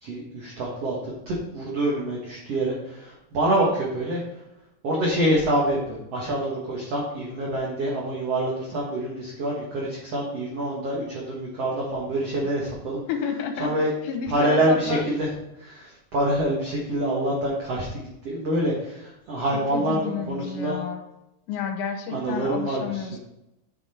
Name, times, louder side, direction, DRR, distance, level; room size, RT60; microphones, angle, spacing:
voice 1, 0.0-0.9 1.2-4.2 4.8-13.0 13.6-13.9 14.3-15.3 15.6-20.8 22.1-23.2, right 1 dB, 55° right, -4 dB, 1.7 m, -26 dB
voice 2, 13.1-13.7 14.0-15.0 19.7-21.0 21.5-23.2, left 6 dB, 80° left, 5 dB, 3.4 m, -30 dB
8.7 x 6.1 x 4.4 m, 0.87 s
omnidirectional pair, 5.1 m